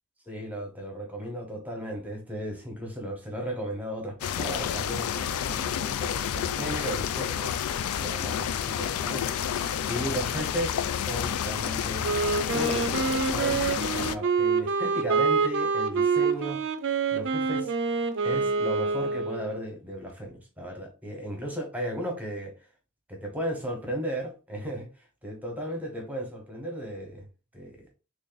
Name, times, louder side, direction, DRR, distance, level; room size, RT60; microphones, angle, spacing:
voice 1, 0.3-7.6 7.9-12.0 12.5-16.7 17.1-17.7 18.2-22.7 23.1-27.3 27.5-27.9, equal, 5° right, 1.0 m, -35 dB
sound 1, 4.2-14.2, left 9 dB, 75° left, 0.3 m, -30 dB
Wind instrument woodwind instrument, 12.0-19.7, right 5 dB, 60° right, 0.5 m, -26 dB
3.2 x 2.5 x 3.9 m
head